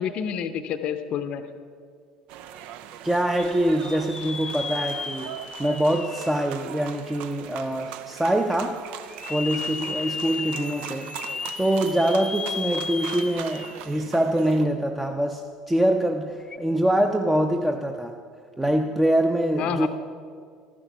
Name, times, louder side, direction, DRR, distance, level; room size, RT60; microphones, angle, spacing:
voice 1, 0.0-1.4 19.6-19.9, left 8 dB, 50° left, 10 dB, 0.7 m, -28 dB
sound 1, 2.3-14.6, right 10 dB, 60° right, 0.5 m, -40 dB
voice 2, 3.0-5.3 5.6-8.8 9.3-11.1 11.6-15.4 15.7-18.2 18.6-19.9, right 1 dB, 10° right, 4 dB, 0.7 m, -24 dB
sound 2, 3.4-7.3 7.9-8.0 9.0-14.0 14.3-14.4 16.4-16.6, left 5 dB, 20° left, 0.9 m, -35 dB
12.0 x 10.0 x 5.9 m, 2.1 s
figure-of-eight pair, 60°, 2 cm